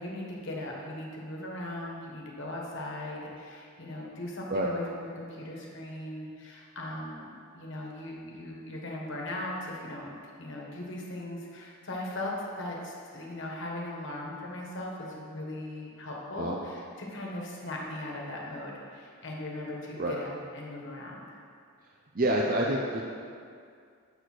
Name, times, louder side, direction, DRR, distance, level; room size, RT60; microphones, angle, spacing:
voice 1, 0.0-21.4, left 1 dB, 55° left, -2 dB, 1.5 m, -38 dB
voice 2, 22.1-23.0, right 1 dB, 40° right, -1 dB, 0.6 m, -27 dB
7.1 x 6.6 x 6.1 m, 2.3 s
head